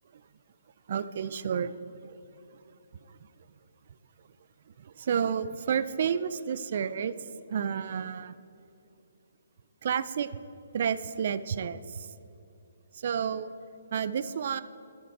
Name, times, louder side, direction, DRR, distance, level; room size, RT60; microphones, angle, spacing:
voice 1, 0.9-1.8 2.0-2.2 4.8-7.1 7.5-8.4 9.8-10.3 10.7-12.1 12.9-13.5 13.9-14.6, right 7 dB, 50° right, 14 dB, 0.3 m, -30 dB
11.5 x 5.2 x 4.6 m, 2.8 s
hypercardioid pair, 160°, 0 cm